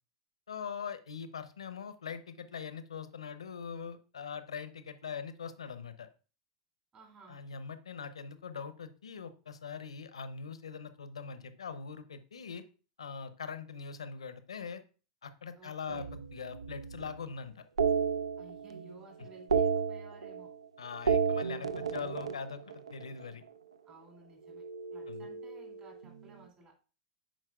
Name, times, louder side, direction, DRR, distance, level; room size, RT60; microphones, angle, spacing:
voice 1, 0.5-6.1 7.3-12.6 13.0-14.8 15.2-17.6 20.8-22.6 22.9-23.4 25.1-25.3, left 6 dB, 85° left, 11 dB, 0.6 m, -42 dB
voice 2, 6.9-7.4 15.6-16.1 18.4-20.5 23.8-24.6 24.9-26.7, right 3 dB, 35° right, 1 dB, 2.5 m, -56 dB
sound 1, 15.9-17.2 17.8-18.9 19.2-20.6 20.9-23.3 24.5-26.2, right 6 dB, 90° right, 0.4 m, -33 dB
10.0 x 4.4 x 2.3 m, 0.36 s
hypercardioid pair, 95°, 3 cm